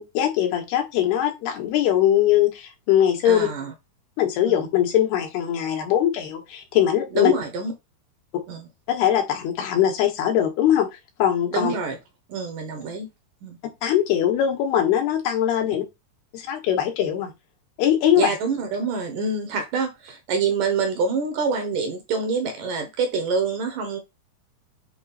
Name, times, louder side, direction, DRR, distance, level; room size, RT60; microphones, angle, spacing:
voice 1, 0.0-3.5 4.2-7.3 8.9-10.9 11.2-11.7 13.8-15.8 16.3-17.3 17.8-18.4, left 10 dB, 85° left, 3.5 m, -21 dB
voice 2, 3.3-3.7 4.5-4.7 7.1-7.7 8.5-8.7 11.5-12.0 12.3-13.1 13.4-13.6 18.2-24.0, right 4 dB, 70° right, 2.3 m, -26 dB
7.6 x 3.1 x 4.1 m
omnidirectional pair, 4.5 m